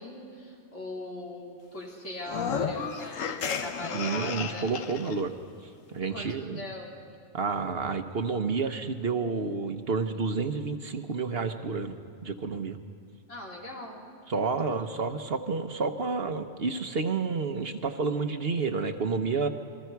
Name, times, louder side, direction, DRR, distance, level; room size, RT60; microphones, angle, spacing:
voice 1, 0.0-4.9 6.1-6.3 6.6-6.9 13.3-14.0 14.7-14.8, left 1 dB, 70° left, -3 dB, 4.0 m, -40 dB
sound 1, 2.2-5.2, left 6 dB, 90° left, 1.3 m, -33 dB
voice 2, 3.9-5.3 5.9-6.6 7.3-12.0 12.2-12.8 14.3-19.5, right 4 dB, 55° right, 7 dB, 1.1 m, -30 dB
28.5 x 21.5 x 4.7 m, 2.5 s
omnidirectional pair, 1.3 m